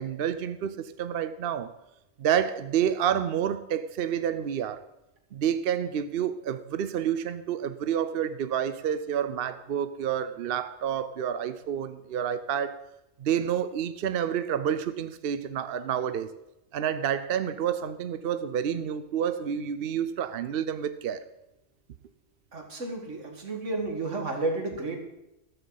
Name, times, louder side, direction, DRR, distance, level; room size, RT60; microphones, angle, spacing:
voice 1, 0.0-1.7 2.2-4.8 5.3-12.8 13.2-16.3 16.7-21.2, right 9 dB, 60° right, 0.7 m, -29 dB
voice 2, 22.5-25.0, right 2 dB, 80° right, 2.3 m, -32 dB
14.0 x 14.0 x 4.0 m
omnidirectional pair, 1.2 m